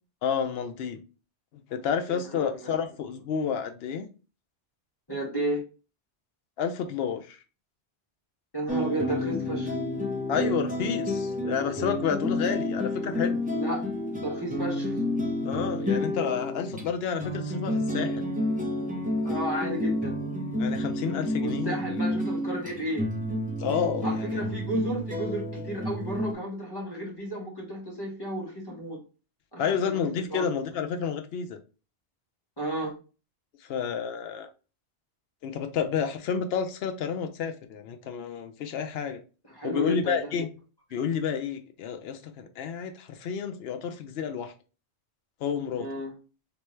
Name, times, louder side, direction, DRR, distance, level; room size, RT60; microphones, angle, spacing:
voice 1, 0.2-1.0 1.5-4.1 6.6-7.4 10.3-13.4 15.4-18.3 20.6-22.0 23.6-24.4 29.6-31.6 33.6-34.5 35.4-39.2 39.6-40.5 40.9-44.5 45.4-45.9, left 7 dB, 65° left, 0.8 m, -30 dB
voice 2, 2.1-2.7 5.1-5.6 8.5-9.7 13.5-13.8 14.2-15.0 19.2-20.2 21.4-23.1 24.0-29.0 29.5-30.0 30.3-30.4 32.6-32.9 39.5-40.3 45.8-46.1, right 1 dB, 20° left, 1.3 m, -33 dB
sound 1, 8.7-26.3, left 1 dB, 10° right, 0.6 m, -30 dB
3.4 x 2.9 x 3.1 m
omnidirectional pair, 1.2 m